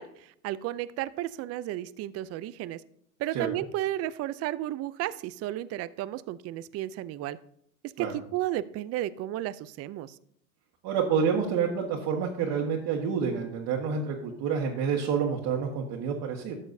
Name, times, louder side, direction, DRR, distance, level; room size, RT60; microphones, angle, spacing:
voice 1, 0.0-2.8 3.2-7.4 7.8-10.2, right 14 dB, 35° right, 17 dB, 0.5 m, -33 dB
voice 2, 10.8-16.5, right 6 dB, 55° right, -1 dB, 1.7 m, -28 dB
13.5 x 7.1 x 2.7 m, 0.68 s
hypercardioid pair, 95°, 42 cm